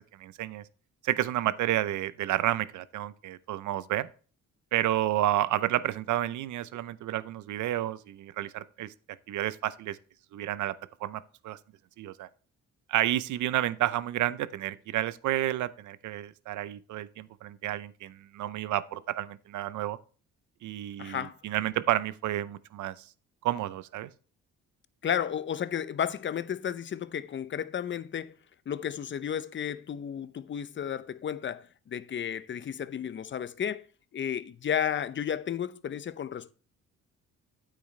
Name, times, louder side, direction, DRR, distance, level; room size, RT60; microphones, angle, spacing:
voice 1, 0.2-0.6 1.0-4.1 4.7-8.9 9.3-10.0 10.3-10.7 11.0-11.6 12.0-12.3 12.9-20.0 20.6-22.9 23.4-24.1, right 13 dB, 75° right, 0.7 m, -30 dB
voice 2, 21.0-21.4 25.0-28.4 28.7-33.9 34.1-36.5, left 8 dB, 40° left, 0.6 m, -33 dB
9.1 x 8.4 x 3.2 m
cardioid pair, 90°, 30 cm